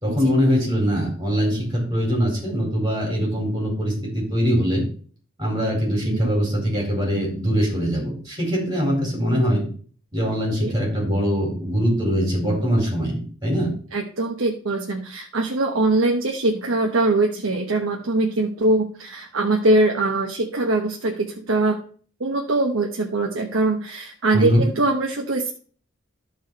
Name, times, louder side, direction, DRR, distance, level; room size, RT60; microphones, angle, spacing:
voice 1, 0.0-4.8 5.4-9.6 10.1-13.7 24.3-24.6, equal, 20° right, -3 dB, 4.7 m, -22 dB
voice 2, 13.9-21.8 22.2-25.6, right 2 dB, 85° right, 1 dB, 1.1 m, -22 dB
13.5 x 4.7 x 4.1 m, 0.43 s
head